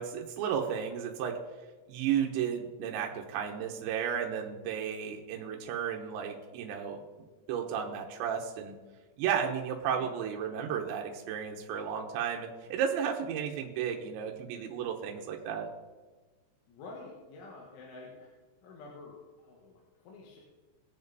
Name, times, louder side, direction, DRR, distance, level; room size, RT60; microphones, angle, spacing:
voice 1, 0.0-1.3 1.9-7.0 7.5-8.8 9.2-15.7, right 8 dB, 80° right, 1 dB, 3.2 m, -33 dB
voice 2, 16.7-18.3 18.6-20.4, left 3 dB, 90° left, -2 dB, 4.0 m, -48 dB
21.5 x 7.5 x 4.1 m, 1.3 s
omnidirectional pair, 5.3 m